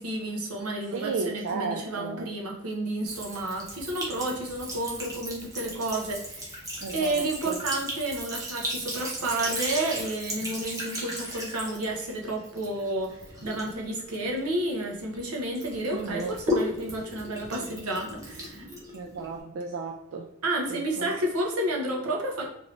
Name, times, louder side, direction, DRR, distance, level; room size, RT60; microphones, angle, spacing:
voice 1, 0.0-6.6 6.9-18.7 20.4-22.5, right 1 dB, 80° right, 0 dB, 0.8 m, -31 dB
voice 2, 0.9-2.3 6.8-7.6 15.9-16.4 18.9-20.3 20.7-21.1, right 4 dB, 60° right, 2 dB, 0.3 m, -34 dB
Sink (filling or washing) / Trickle dribble, 3.0-15.2 15.5-19.4, left 1 dB, 15° right, 0.8 m, -36 dB
2.8 x 2.6 x 3.1 m, 0.81 s
head